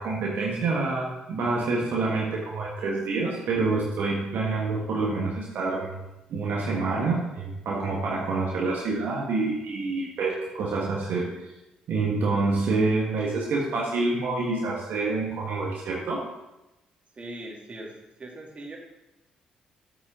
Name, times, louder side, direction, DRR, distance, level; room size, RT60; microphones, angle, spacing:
voice 1, 0.0-5.9 6.3-11.5 11.9-16.2, right 3 dB, 65° right, -3 dB, 1.5 m, -27 dB
voice 2, 17.1-18.8, right 1 dB, 35° right, -2 dB, 2.7 m, -40 dB
9.7 x 8.5 x 3.7 m, 0.96 s
hypercardioid pair, 45°, 4 cm